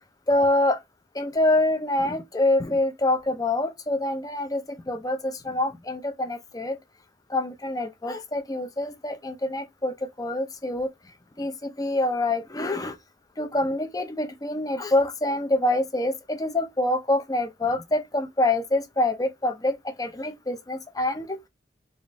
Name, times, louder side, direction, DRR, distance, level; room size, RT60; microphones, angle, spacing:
voice 1, 0.3-0.8 1.2-4.6 4.9-6.8 7.3-10.9 11.4-13.0 13.4-21.5, left 2 dB, 20° left, 0.6 m, -26 dB
3.5 x 2.5 x 4.0 m
head